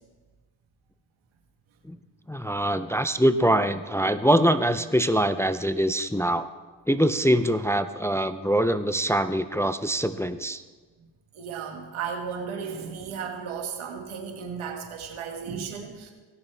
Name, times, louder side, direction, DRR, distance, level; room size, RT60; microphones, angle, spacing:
voice 1, 2.3-6.5 6.9-10.6, equal, 5° left, 11 dB, 0.4 m, -23 dB
voice 2, 11.3-16.1, right 6 dB, 85° right, 3 dB, 1.6 m, -34 dB
17.5 x 6.8 x 3.4 m, 1.4 s
supercardioid pair, 50°, 47 cm